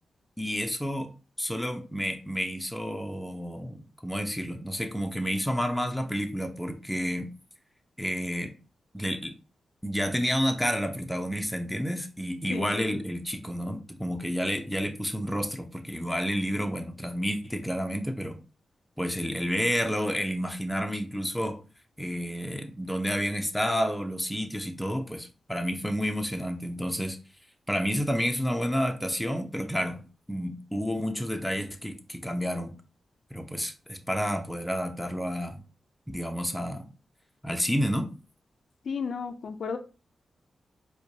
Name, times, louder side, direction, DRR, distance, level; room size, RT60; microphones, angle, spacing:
voice 1, 0.4-1.1 1.4-7.3 8.0-8.6 8.9-9.3 9.8-18.4 19.0-21.6 22.0-27.2 27.7-30.0 30.3-32.7 33.3-35.6 36.1-36.8 37.4-38.1, equal, 5° left, 0.6 m, -30 dB
voice 2, 12.5-13.0 38.9-39.8, left 5 dB, 70° left, 0.3 m, -33 dB
4.5 x 2.2 x 2.7 m
cardioid pair, 75°, 0 cm